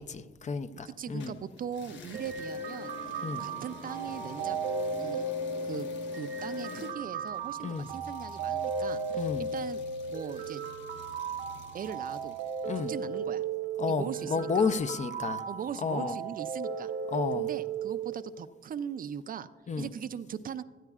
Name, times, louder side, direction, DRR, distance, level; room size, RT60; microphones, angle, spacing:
voice 1, 0.0-1.3 3.2-3.4 7.6-7.9 9.1-9.5 12.7-12.9 13.8-15.4 15.8-16.2 17.1-17.5 19.7-19.9, left 5 dB, 35° left, 0.6 m, -31 dB
voice 2, 0.7-4.6 5.0-5.2 5.6-5.9 6.1-9.8 10.1-10.6 11.7-12.4 12.8-13.4 13.9-14.6 15.5-16.9 17.3-19.5 19.8-20.6, right 8 dB, 45° right, 0.4 m, -40 dB
sound 1, 1.2-13.0, left 4 dB, 65° left, 1.2 m, -48 dB
sound 2, 2.1-18.1, right 4 dB, 85° right, 1.2 m, -35 dB
16.5 x 13.0 x 2.4 m
cardioid pair, 90°, 20 cm